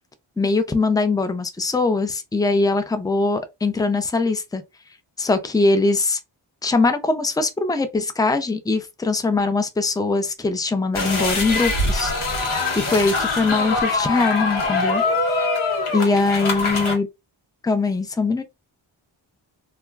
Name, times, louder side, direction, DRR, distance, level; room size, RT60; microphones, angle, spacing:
voice 1, 0.4-4.6 5.2-6.2 6.6-12.1 12.8-15.0 15.3-15.5 15.9-17.1 17.6-18.4, left 3 dB, 10° left, 0.5 m, -21 dB
sound 1, 10.9-16.9, left 3 dB, 90° left, 1.0 m, -23 dB
2.3 x 2.1 x 3.3 m
cardioid pair, 45°, 48 cm